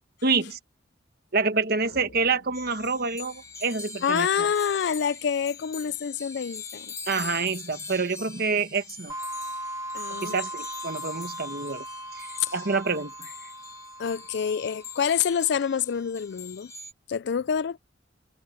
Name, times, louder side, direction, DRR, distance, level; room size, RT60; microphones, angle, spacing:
voice 1, 0.2-0.6 1.3-4.5 7.1-9.1 10.1-11.8 12.1-12.3 12.5-13.3, right 4 dB, 55° right, 1.4 m, -27 dB
sound 1, 1.8-4.3, left 1 dB, 80° left, 7.2 m, -54 dB
sound 2, 2.5-16.9, left 5 dB, 15° left, 1.8 m, -43 dB
voice 2, 4.0-6.9 9.9-10.3 12.4-12.5 14.0-16.7 17.1-17.8, left 7 dB, 65° left, 0.4 m, -27 dB
sound 3, 9.1-15.6, right 1 dB, 15° right, 1.7 m, -39 dB
head